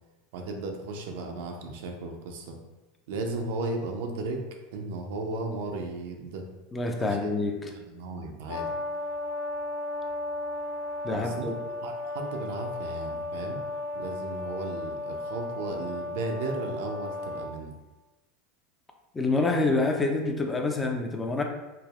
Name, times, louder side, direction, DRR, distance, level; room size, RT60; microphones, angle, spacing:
voice 1, 0.3-2.6 3.1-4.4 4.7-6.5 7.0-8.7 11.1-11.5 11.8-13.6 13.9-17.7, right 2 dB, 70° right, 3 dB, 0.4 m, -35 dB
voice 2, 6.7-7.7 11.0-11.5 19.1-21.4, left 3 dB, 20° left, 3 dB, 0.4 m, -27 dB
Brass instrument, 8.5-17.5, left 2 dB, 80° left, 1.4 m, -35 dB
3.3 x 2.0 x 2.2 m, 1.1 s
hypercardioid pair, 90°, 0 cm